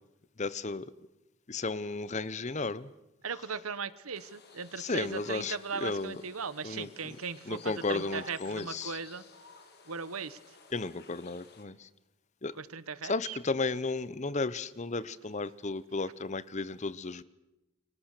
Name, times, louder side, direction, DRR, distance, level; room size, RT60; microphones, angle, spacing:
voice 1, 0.4-0.9 1.5-2.9 4.8-6.2 6.6-6.9 7.5-9.0 10.7-11.7 12.4-12.5 13.0-17.2, left 3 dB, 35° left, 17 dB, 0.8 m, -34 dB
voice 2, 3.2-9.2 9.9-10.4 12.5-13.4, right 5 dB, 80° right, 16 dB, 1.2 m, -38 dB
sound 1, 4.1-11.6, left 4 dB, 50° left, 3.4 m, -54 dB
29.5 x 24.0 x 6.7 m, 0.96 s
head